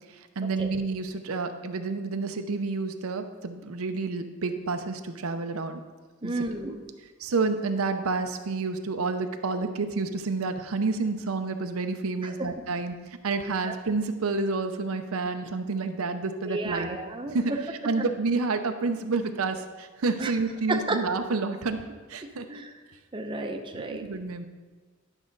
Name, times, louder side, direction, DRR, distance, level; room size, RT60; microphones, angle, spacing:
voice 1, 0.4-5.8 6.2-6.5 7.2-13.0 13.2-17.0 17.3-17.5 17.8-21.8 22.1-22.5 23.7-24.5, right 3 dB, 90° right, 7 dB, 0.6 m, -29 dB
voice 2, 6.2-6.8 12.2-12.4 13.6-13.7 16.5-17.4 18.0-18.1 20.2-20.3 20.7-21.0 22.5-22.7 23.1-24.1, right 2 dB, 25° right, 3 dB, 0.6 m, -32 dB
10.5 x 6.2 x 3.9 m, 1.4 s
head